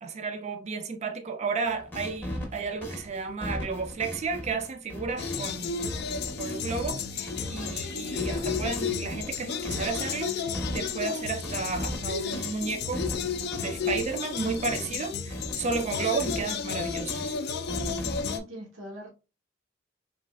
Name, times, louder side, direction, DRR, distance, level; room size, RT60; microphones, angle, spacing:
voice 1, 0.0-5.8 6.4-10.4 10.7-13.1 13.6-17.4, right 4 dB, 35° right, 0.4 m, -33 dB
sound 1, 1.7-7.8 8.2-15.1 15.3-17.3 17.7-18.4, equal, 10° left, 0.6 m, -38 dB
sound 2, 5.2-18.4, left 6 dB, 55° left, 0.3 m, -33 dB
voice 2, 18.2-19.1, equal, 85° right, 0.8 m, -41 dB
3.2 x 2.6 x 2.2 m
head